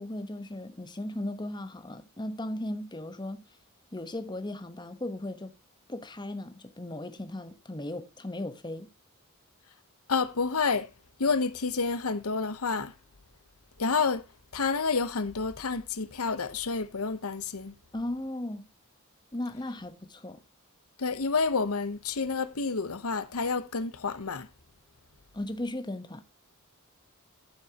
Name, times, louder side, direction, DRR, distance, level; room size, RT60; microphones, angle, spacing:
voice 1, 0.0-3.4 3.9-5.5 5.9-8.9 17.9-18.7 19.3-20.4 25.3-26.2, left 1 dB, 20° left, 1.1 m, -36 dB
voice 2, 10.1-10.9 11.2-12.9 13.8-14.2 14.5-17.7 21.0-24.5, left 4 dB, 80° left, 1.0 m, -29 dB
14.5 x 7.3 x 2.9 m
head